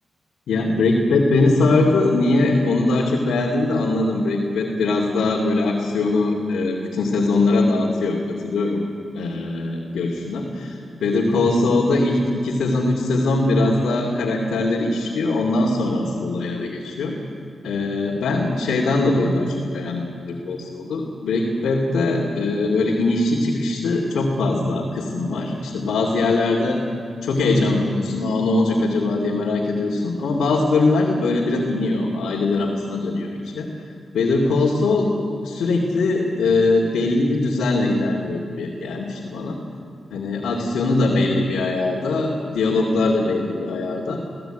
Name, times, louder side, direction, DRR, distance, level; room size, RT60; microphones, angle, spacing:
voice 1, 0.5-8.8 9.1-17.1 17.6-26.8 27.2-33.7 34.1-39.6 40.1-44.2, left 2 dB, 85° left, -2 dB, 2.6 m, -21 dB
22.5 x 16.5 x 9.1 m, 2.4 s
cardioid pair, 75°, 0 cm